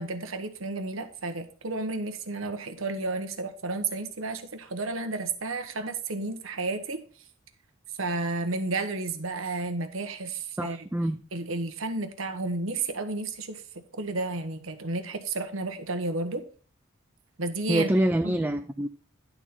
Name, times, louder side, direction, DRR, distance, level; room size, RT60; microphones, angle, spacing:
voice 1, 0.0-7.0 8.0-10.9 11.3-13.6 13.9-16.4 17.4-17.9 18.2-18.4, right 3 dB, 80° right, 7 dB, 1.2 m, -32 dB
voice 2, 10.6-11.2 17.7-18.9, right 1 dB, 10° right, 9 dB, 0.3 m, -25 dB
11.0 x 4.1 x 5.9 m, 0.42 s
head